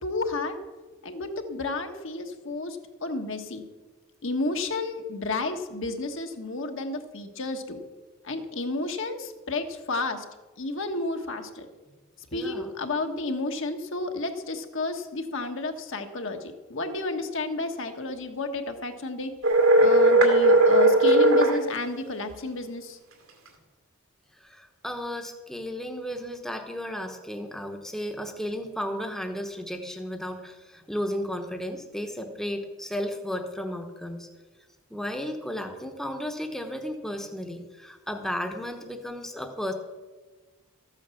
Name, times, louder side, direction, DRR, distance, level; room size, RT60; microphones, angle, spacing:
voice 1, 0.0-0.5 1.0-3.6 4.2-7.8 8.2-10.2 10.6-11.7 12.3-19.3 19.8-23.0, left 2 dB, 60° left, 5 dB, 1.3 m, -31 dB
voice 2, 12.3-12.7 24.3-34.3 34.9-39.7, equal, ahead, 4 dB, 1.0 m, -34 dB
sound 1, 19.4-21.6, right 1 dB, 75° right, 2.3 m, -17 dB
13.5 x 8.9 x 7.0 m, 1.3 s
head